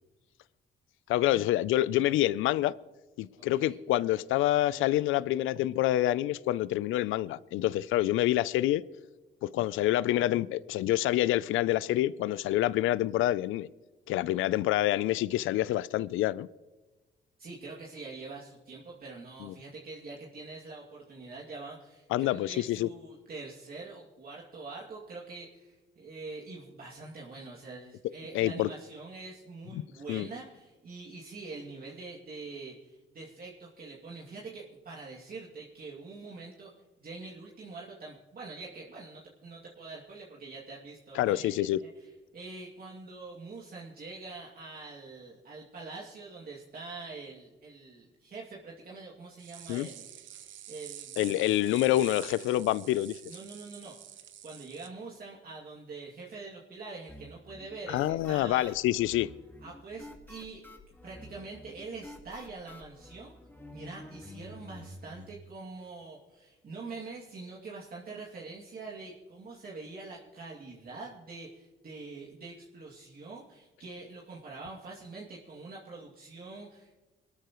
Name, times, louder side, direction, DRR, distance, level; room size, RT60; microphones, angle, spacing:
voice 1, 1.1-2.7 3.2-8.8 9.4-13.7 14.1-16.5 19.4-19.5 22.1-22.9 28.3-28.7 29.7-29.8 30.1-30.3 41.2-41.8 49.7-49.9 51.2-53.2 57.9-59.3, left 14 dB, 85° left, 0.5 m, -27 dB
voice 2, 3.4-3.8 17.4-36.7 37.0-50.1 50.4-51.2 53.3-58.7 59.6-60.6 61.0-63.3 63.7-76.9, right 3 dB, 50° right, 2.5 m, -45 dB
sound 1, 49.4-54.9, right 11 dB, 75° right, 0.9 m, -47 dB
sound 2, 57.1-65.3, left 1 dB, 10° left, 1.8 m, -49 dB
22.5 x 13.0 x 3.1 m
cardioid pair, 90°, 20 cm